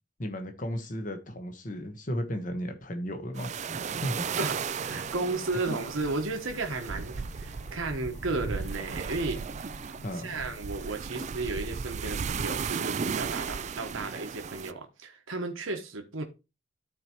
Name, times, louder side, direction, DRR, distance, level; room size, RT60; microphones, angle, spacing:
voice 1, 0.2-4.2 5.7-5.8 10.0-10.3, equal, 40° left, 1.2 m, -35 dB
sound 1, 3.4-14.7, right 6 dB, 35° right, 0.3 m, -35 dB
voice 2, 4.4-9.6 10.1-16.2, right 3 dB, 90° right, 1.2 m, -34 dB
sound 2, 4.8-11.6, left 2 dB, 70° left, 1.5 m, -50 dB
13.5 x 4.5 x 3.0 m
head